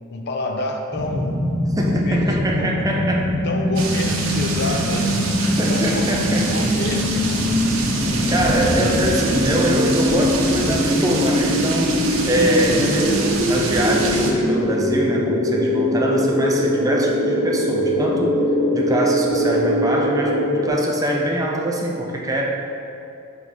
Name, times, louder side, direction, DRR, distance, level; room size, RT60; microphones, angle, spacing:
voice 1, 0.1-1.4 1.8-2.7 3.4-5.4 5.7-7.1 8.1-8.7, left 2 dB, 55° left, 3 dB, 0.5 m, -29 dB
sound 1, 0.9-20.7, equal, 5° left, 1.1 m, -22 dB
voice 2, 1.8-3.3 5.6-6.5 8.3-18.4 18.7-22.4, right 1 dB, 15° right, -1 dB, 0.6 m, -23 dB
sound 2, 3.8-14.3, right 3 dB, 80° right, 0.8 m, -26 dB
7.5 x 3.4 x 4.0 m, 2.6 s
head